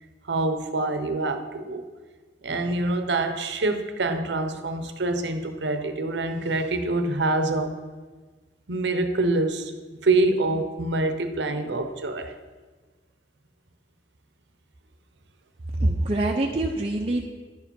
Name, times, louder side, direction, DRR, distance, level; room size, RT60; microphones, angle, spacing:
voice 1, 0.3-1.8 2.4-7.8 8.7-9.7 10.0-12.3, right 2 dB, 70° right, 8 dB, 0.7 m, -25 dB
voice 2, 15.8-17.3, right 1 dB, 35° right, -1 dB, 0.6 m, -24 dB
10.5 x 5.0 x 5.3 m, 1.3 s
head